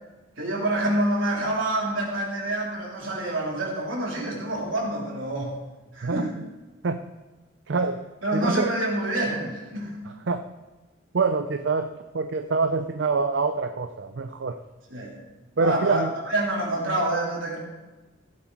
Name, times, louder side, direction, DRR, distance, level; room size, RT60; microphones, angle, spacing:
voice 1, 0.4-5.5 5.9-6.3 8.2-10.0 14.9-15.2 15.6-17.6, right 1 dB, 85° right, -3 dB, 3.3 m, -27 dB
voice 2, 6.0-6.4 6.8-7.0 7.7-8.1 8.3-8.7 10.3-10.4 11.1-14.6 15.6-16.1, right 4 dB, 65° right, 7 dB, 0.5 m, -25 dB
15.5 x 7.6 x 4.7 m, 1.2 s
head